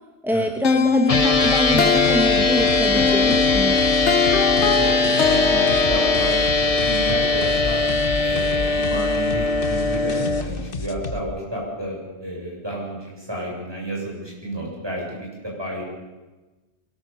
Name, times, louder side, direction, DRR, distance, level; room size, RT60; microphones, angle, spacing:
voice 1, 0.2-3.8, equal, ahead, 5 dB, 1.2 m, -25 dB
sound 1, 0.6-6.4, left 6 dB, 90° left, 1.4 m, -22 dB
sound 2, 1.1-11.2, left 3 dB, 55° left, 1.5 m, -31 dB
sound 3, 1.1-10.4, left 3 dB, 35° left, 1.2 m, -21 dB
voice 2, 4.6-7.8 8.2-15.8, equal, 20° right, -2 dB, 7.5 m, -31 dB
23.0 x 19.0 x 7.0 m, 1.2 s
omnidirectional pair, 1.1 m